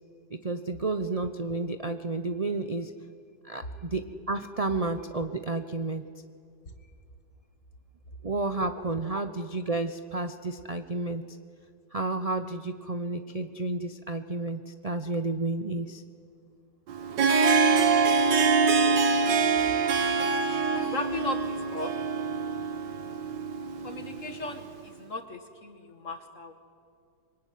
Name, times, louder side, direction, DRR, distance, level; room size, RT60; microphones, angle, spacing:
voice 1, 0.3-2.9 3.4-6.1 8.2-11.4 11.9-16.0, right 3 dB, 35° right, 8 dB, 0.6 m, -31 dB
Harp, 16.9-24.6, right 4 dB, 80° right, 2.0 m, -25 dB
voice 2, 17.9-18.3 20.8-21.9 23.8-26.5, left 3 dB, 45° left, 7 dB, 2.2 m, -37 dB
26.0 x 24.0 x 9.4 m, 2.4 s
omnidirectional pair, 1.9 m